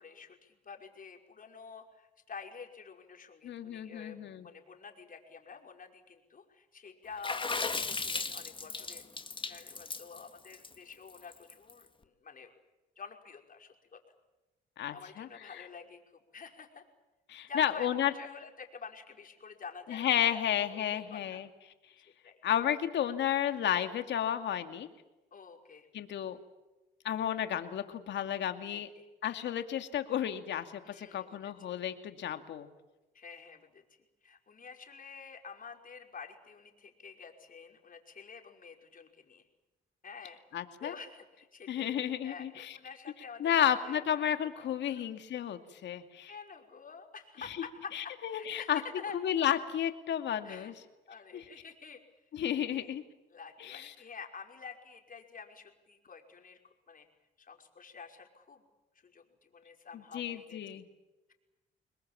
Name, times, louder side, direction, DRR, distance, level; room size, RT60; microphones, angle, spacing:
voice 1, 0.0-4.2 4.4-9.0 9.4-12.5 13.0-14.0 14.9-16.8 17.4-20.5 20.7-21.4 22.2-22.4 25.3-25.9 28.7-29.1 30.8-31.8 33.1-33.8 34.2-39.4 40.0-40.4 40.8-41.9 42.2-44.0 44.6-45.0 46.3-49.2 50.4-50.7 51.1-52.0 52.5-53.0 53.3-56.6 56.9-57.1 57.4-58.6 59.0-60.8, left 5 dB, 50° left, 3 dB, 5.4 m, -49 dB
voice 2, 3.4-4.5 14.8-15.6 17.3-18.1 19.9-21.5 22.4-24.9 25.9-26.4 27.0-28.9 29.2-32.7 40.5-40.9 41.7-42.8 43.4-46.3 47.9-48.8 49.1-50.7 51.3-51.4 52.3-53.0 53.6-53.9 60.1-60.8, left 10 dB, 75° left, 8 dB, 2.5 m, -32 dB
Water / Splash splatter, 7.2-11.7, left 3 dB, 25° left, 2.1 m, -36 dB
28.5 x 21.0 x 7.6 m, 1.1 s
cardioid pair, 70°, 19 cm